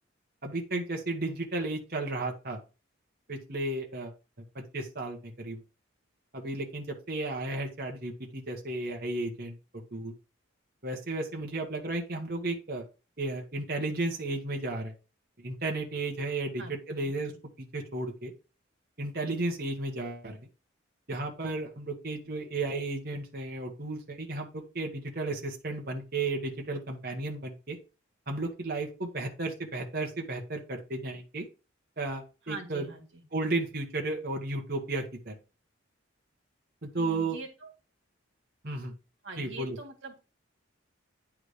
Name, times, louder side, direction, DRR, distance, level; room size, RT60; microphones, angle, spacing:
voice 1, 0.4-2.6 3.3-4.1 4.5-5.6 6.3-10.1 10.8-12.9 13.2-14.9 15.4-17.3 17.6-18.3 19.0-20.4 21.1-27.8 28.3-31.5 32.0-32.9 33.3-35.4 36.8-37.4 38.6-38.9 39.4-39.8, right 2 dB, 45° right, 2 dB, 1.4 m, -34 dB
voice 2, 32.5-33.0 37.0-37.7 39.2-40.2, right 3 dB, 65° right, 3 dB, 1.9 m, -43 dB
9.7 x 3.7 x 4.9 m, 0.31 s
head